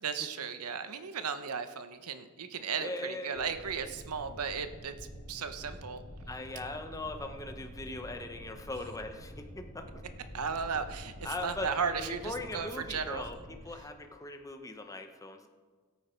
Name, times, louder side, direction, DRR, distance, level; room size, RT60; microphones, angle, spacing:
voice 1, 0.0-6.0 10.3-13.3, right 6 dB, 85° right, 10 dB, 0.9 m, -35 dB
voice 2, 2.8-3.5 6.3-10.0 11.2-11.7 11.9-13.4 13.6-15.5, left 2 dB, 15° left, 6 dB, 0.8 m, -40 dB
sound 1, 3.3-13.6, equal, 85° left, 2.7 m, -48 dB
16.5 x 8.7 x 4.5 m, 1.4 s
head